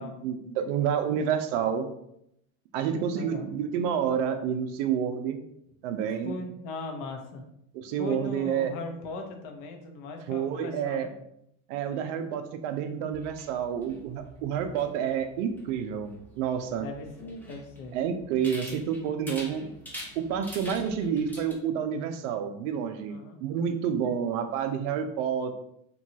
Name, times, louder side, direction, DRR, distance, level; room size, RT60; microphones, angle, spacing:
voice 1, 0.0-1.9 2.7-5.4 5.8-6.4 7.7-8.7 10.3-11.1 11.7-16.9 17.9-19.7 20.2-25.6, right 8 dB, 65° right, 7 dB, 0.5 m, -29 dB
voice 2, 2.8-3.5 6.2-7.4 8.0-11.1 16.8-18.0 18.3-18.8 23.0-23.4, left 3 dB, 50° left, 4 dB, 0.7 m, -39 dB
sound 1, 13.1-21.5, equal, 5° left, 0.5 m, -46 dB
2.9 x 2.3 x 2.7 m, 0.75 s
supercardioid pair, 110°, 41 cm